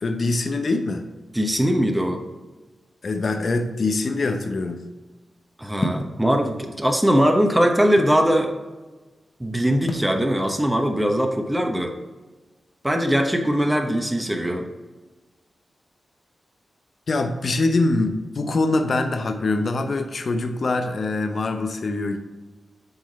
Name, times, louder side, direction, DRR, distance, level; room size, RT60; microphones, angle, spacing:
voice 1, 0.0-1.1 3.0-4.8 17.1-22.2, left 2 dB, 65° left, 6 dB, 0.7 m, -24 dB
voice 2, 1.3-2.2 5.6-8.5 9.4-11.9 12.8-14.7, equal, 10° right, 3 dB, 1.0 m, -21 dB
sound 1, 5.8-6.2 7.0-8.2 9.9-10.2, left 1 dB, 40° left, 0.9 m, -29 dB
7.8 x 3.7 x 4.1 m, 1.2 s
supercardioid pair, 40°, 0 cm